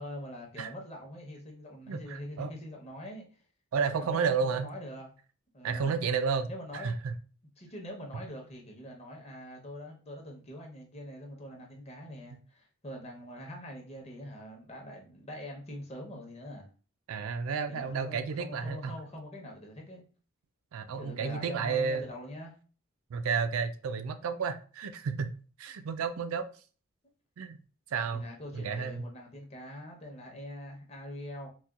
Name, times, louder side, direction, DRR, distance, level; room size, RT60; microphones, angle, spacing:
voice 1, 0.0-3.4 3.9-5.2 5.5-5.9 6.5-6.9 7.6-16.7 17.7-20.1 21.0-22.5 28.1-31.5, left 1 dB, 30° left, 0.8 m, -44 dB
voice 2, 1.9-2.5 3.7-4.7 5.6-7.2 17.1-19.0 20.7-22.0 23.1-25.3 25.6-26.5 27.4-27.6 27.9-28.2 28.5-29.1, right 5 dB, 80° right, 0.4 m, -31 dB
4.1 x 2.2 x 2.4 m
head